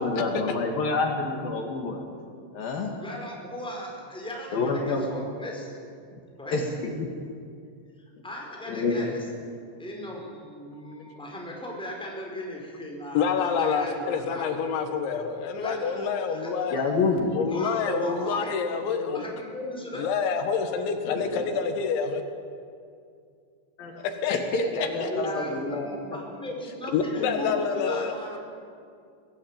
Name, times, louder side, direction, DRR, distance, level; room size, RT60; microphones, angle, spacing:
voice 1, 0.0-2.0 2.5-3.0 4.5-5.1 6.5-6.9 8.8-9.0 16.7-17.5 21.0-21.5 23.8-25.9, left 3 dB, 60° left, 2 dB, 3.6 m, -28 dB
voice 2, 3.0-5.7 6.4-6.7 8.2-9.2 9.8-14.5 15.5-16.9 17.5-18.5 18.8-20.1 24.8-28.4, equal, ahead, -1 dB, 4.1 m, -37 dB
voice 3, 13.2-16.8 17.3-19.2 20.0-22.2 24.0-24.4 24.7-25.1 26.9-28.1, left 6 dB, 85° left, 6 dB, 4.0 m, -27 dB
24.5 x 18.0 x 9.0 m, 2.3 s
omnidirectional pair, 5.1 m